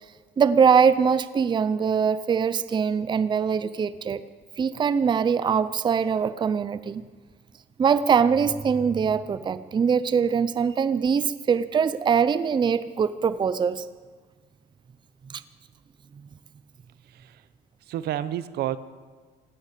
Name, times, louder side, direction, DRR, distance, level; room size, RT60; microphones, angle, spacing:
voice 1, 0.4-4.2 4.6-7.0 7.8-13.9 15.3-15.4, right 6 dB, 25° right, 15 dB, 0.5 m, -22 dB
voice 2, 17.9-18.8, right 12 dB, 70° right, 15 dB, 0.8 m, -30 dB
16.5 x 12.0 x 6.7 m, 1.4 s
cardioid pair, 110°, 17 cm